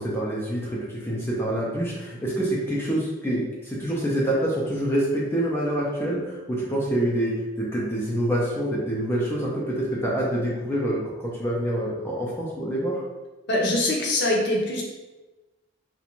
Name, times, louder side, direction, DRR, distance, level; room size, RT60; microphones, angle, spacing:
voice 1, 0.0-13.0, right 1 dB, 10° left, -5 dB, 0.4 m, -26 dB
voice 2, 13.5-14.8, left 1 dB, 60° left, -2 dB, 0.6 m, -23 dB
2.4 x 2.1 x 2.9 m, 1.1 s
head